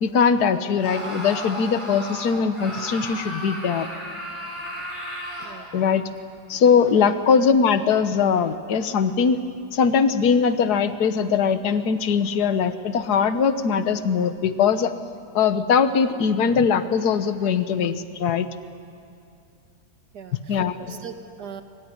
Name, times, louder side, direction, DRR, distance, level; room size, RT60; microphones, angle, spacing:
voice 1, 0.0-3.9 5.7-6.0 6.5-9.4 9.7-14.9 15.3-18.5 20.5-20.9, left 6 dB, 65° left, 10 dB, 1.7 m, -21 dB
Screaming, 0.8-5.6, equal, 15° right, 6.0 m, -34 dB
voice 2, 5.4-5.8 6.9-7.1 20.1-21.6, right 7 dB, 70° right, 6 dB, 2.3 m, -40 dB
26.0 x 23.5 x 9.7 m, 2.5 s
omnidirectional pair, 1.8 m